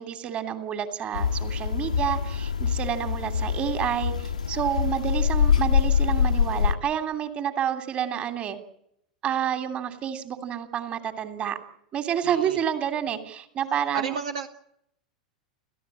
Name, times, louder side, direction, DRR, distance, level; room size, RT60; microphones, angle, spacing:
voice 1, 0.0-8.6 9.2-11.6 11.9-14.1, right 9 dB, 30° right, 8 dB, 3.0 m, -29 dB
sound 1, 1.1-6.7, left 7 dB, 80° left, 1.8 m, -24 dB
voice 2, 12.2-12.6 13.9-14.5, right 6 dB, 65° right, 7 dB, 1.5 m, -33 dB
29.5 x 14.5 x 8.6 m, 0.75 s
figure-of-eight pair, 90°, 4 cm